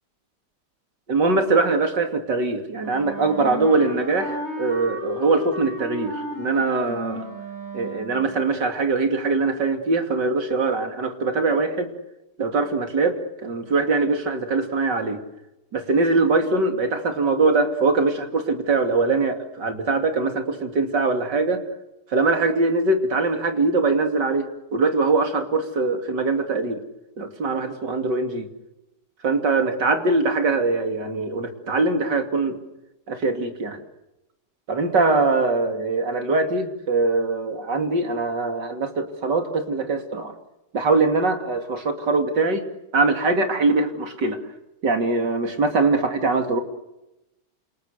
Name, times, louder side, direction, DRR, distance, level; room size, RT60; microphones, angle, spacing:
voice 1, 1.1-7.2 7.7-11.9 12.4-15.2 15.7-21.6 22.1-26.8 27.2-28.5 29.2-32.6 33.1-33.8 34.7-40.3 40.7-42.6 42.9-44.4 44.8-46.6, right 3 dB, 85° right, 6 dB, 3.4 m, -22 dB
Wind instrument woodwind instrument, 2.8-8.3, left 1 dB, 40° right, 8.0 m, -33 dB
28.5 x 28.0 x 6.7 m, 0.93 s
omnidirectional pair, 1.8 m